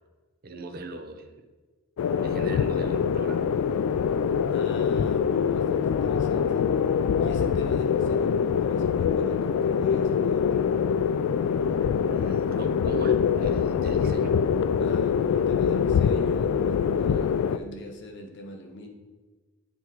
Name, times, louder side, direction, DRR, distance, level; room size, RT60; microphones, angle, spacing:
voice 1, 0.4-1.3 2.2-3.4 12.1-14.4, right 2 dB, 45° right, 6 dB, 0.6 m, -38 dB
sound 1, 2.0-17.6, left 7 dB, 85° left, 0.3 m, -24 dB
voice 2, 4.4-6.6 7.2-10.7 14.8-18.9, left 1 dB, 55° left, 3 dB, 0.9 m, -42 dB
7.9 x 3.5 x 4.5 m, 1.3 s
head